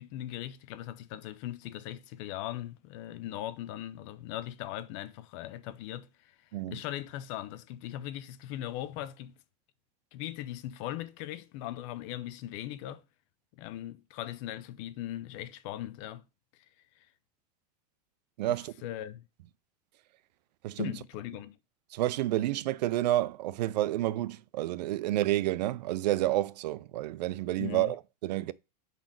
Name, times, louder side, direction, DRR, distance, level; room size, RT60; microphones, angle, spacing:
voice 1, 0.0-6.4 6.7-9.4 10.1-13.0 13.5-16.2 17.0-17.1 18.5-19.2 20.8-21.6 27.6-27.9, left 13 dB, 50° left, 0.6 m, -39 dB
voice 2, 18.4-18.7 20.6-20.9 21.9-28.5, right 15 dB, 85° right, 0.5 m, -30 dB
5.1 x 4.2 x 5.8 m
supercardioid pair, 155°, 21 cm